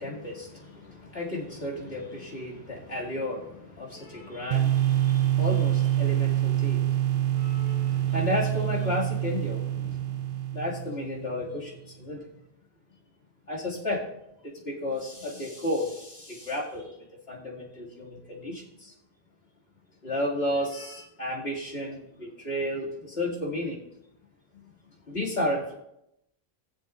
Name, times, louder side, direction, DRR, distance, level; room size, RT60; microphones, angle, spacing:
voice 1, 0.0-12.3 13.5-14.1 14.4-17.0 17.3-18.9 20.0-23.8 25.1-25.7, left 1 dB, 70° left, -4 dB, 2.7 m, -33 dB
sound 1, 4.5-11.3, right 13 dB, 60° right, 0.7 m, -26 dB
20.5 x 7.0 x 2.5 m, 0.81 s
omnidirectional pair, 1.1 m